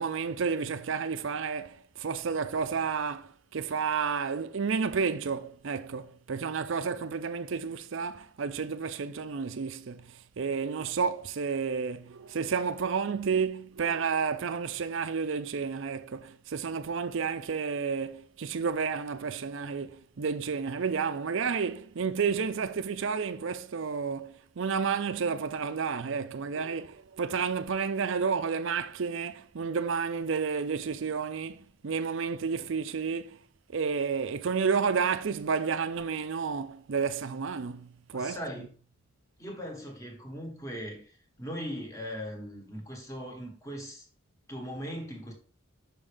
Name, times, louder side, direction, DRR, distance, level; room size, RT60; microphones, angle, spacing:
voice 1, 0.0-33.4 33.7-38.4, right 5 dB, 60° right, 0.5 m, -31 dB
voice 2, 38.1-38.7 39.4-44.1 44.5-45.3, equal, 15° left, 1.3 m, -39 dB
5.9 x 5.5 x 3.4 m
head